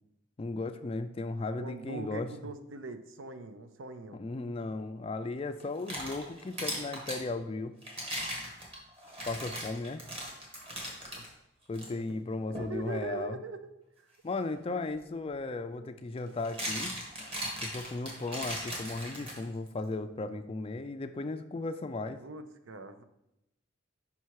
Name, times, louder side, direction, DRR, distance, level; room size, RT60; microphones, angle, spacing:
voice 1, 0.4-2.3 4.1-7.7 9.2-10.0 11.7-13.4 14.2-16.9 17.6-22.2, left 3 dB, 30° left, 9 dB, 0.3 m, -36 dB
voice 2, 1.5-4.2 11.2-11.4 11.8-12.2 12.6-14.1 14.7-14.9 22.2-23.0, right 3 dB, 75° right, 9 dB, 0.6 m, -42 dB
sound 1, 5.6-7.2 7.8-11.3 11.7-11.9 12.5-12.8 14.9-15.0 16.2-19.7, equal, 30° right, 1.7 m, -38 dB
5.6 x 5.6 x 4.7 m, 0.85 s
head